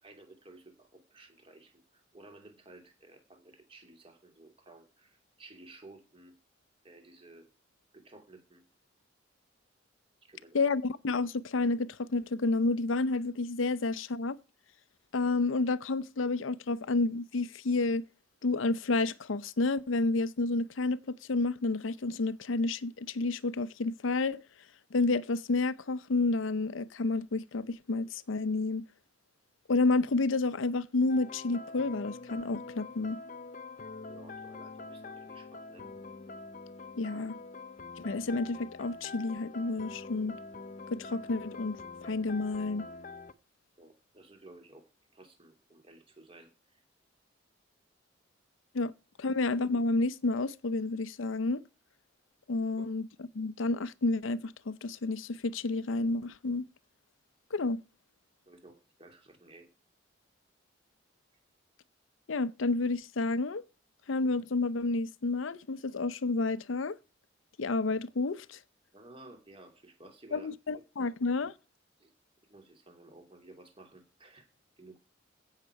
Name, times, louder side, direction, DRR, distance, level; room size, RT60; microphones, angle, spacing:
voice 1, 0.0-6.3 6.8-7.5 7.9-8.6 10.2-10.7 34.0-35.9 43.8-44.8 45.1-46.8 48.8-48.9 49.2-49.3 52.8-52.9 57.5-57.7 58.5-59.7 68.9-70.5 71.0-71.1 72.0-72.1 72.5-74.5 74.8-75.0, right 2 dB, 30° right, 2.9 m, -54 dB
voice 2, 10.5-14.4 15.1-18.1 18.4-24.4 24.9-28.9 29.7-33.2 37.0-37.4 38.0-40.4 40.9-42.9 48.7-48.9 49.2-51.6 52.5-53.1 53.3-56.6 57.5-57.8 62.3-63.6 64.1-67.0 67.6-68.6 70.3-71.5, left 3 dB, 90° left, 0.6 m, -30 dB
sound 1, 31.1-43.3, left 3 dB, 40° left, 0.7 m, -45 dB
16.0 x 6.7 x 4.6 m
head